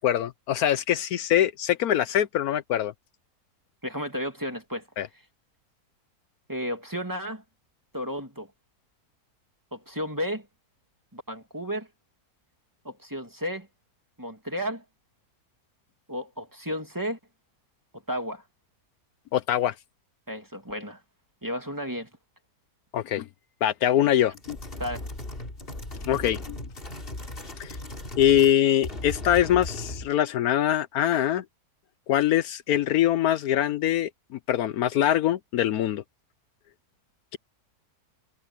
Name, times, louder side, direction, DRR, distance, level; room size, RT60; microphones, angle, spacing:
voice 1, 0.0-2.9 5.0-5.1 19.3-19.7 22.9-23.3 23.6-24.6 26.1-26.6 27.6-27.8 28.2-31.4 32.1-36.0, left 11 dB, 75° left, 1.1 m, -23 dB
voice 2, 3.8-4.9 6.5-7.4 7.9-8.5 9.7-10.5 11.1-11.9 12.8-13.7 14.2-14.8 16.1-17.2 18.1-18.4 20.3-21.0 21.4-22.1 24.8-25.0, equal, 10° right, 2.5 m, -33 dB
sound 1, 24.3-28.6 28.8-30.1, left 1 dB, 35° left, 3.2 m, -37 dB
omnidirectional pair, 1.6 m